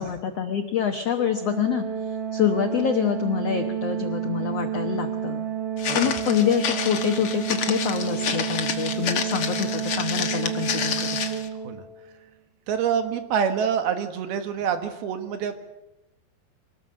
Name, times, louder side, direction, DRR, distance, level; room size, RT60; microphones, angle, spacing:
voice 1, 0.0-5.4 5.9-11.3, left 9 dB, 80° left, 6 dB, 1.4 m, -26 dB
Organ, 1.2-12.0, right 9 dB, 55° right, 1.9 m, -30 dB
Walk footsteps, 5.8-11.5, left 7 dB, 60° left, 1.5 m, -29 dB
voice 2, 12.7-15.6, right 7 dB, 75° right, 8 dB, 3.4 m, -26 dB
24.5 x 18.5 x 7.7 m, 0.96 s
omnidirectional pair, 4.6 m